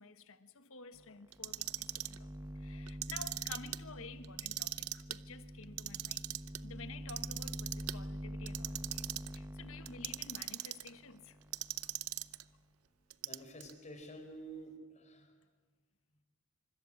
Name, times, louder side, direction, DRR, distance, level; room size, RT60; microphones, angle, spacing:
voice 1, 0.0-6.4 6.6-11.4, left 4 dB, 65° left, 1.5 m, -52 dB
sound 1, 0.9-1.1 1.3-12.5, equal, 10° right, 0.9 m, -46 dB
Clock, 1.3-2.2 2.9-3.8 4.2-5.2 5.6-6.6 7.1-8.0 8.5-9.4 9.9-10.9 11.5-12.4 13.1-13.7, right 15 dB, 75° right, 0.7 m, -40 dB
voice 2, 13.2-15.3, right 1 dB, 35° left, 4.3 m, -49 dB
25.5 x 24.5 x 8.7 m
head